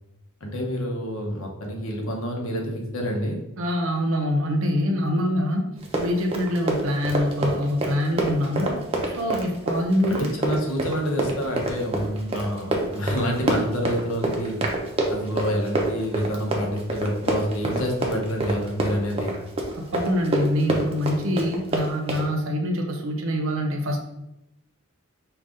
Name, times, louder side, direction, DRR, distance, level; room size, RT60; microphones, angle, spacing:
voice 1, 0.4-3.4 10.1-14.6 15.1-19.4, equal, 70° left, 1 dB, 0.9 m, -27 dB
voice 2, 3.6-5.7 6.0-8.8 9.1-10.3 19.8-24.0, left 1 dB, 65° right, 3 dB, 0.7 m, -25 dB
Run, 5.8-22.3, right 2 dB, 25° right, 0.6 m, -26 dB
5.3 x 2.3 x 3.7 m, 0.87 s
head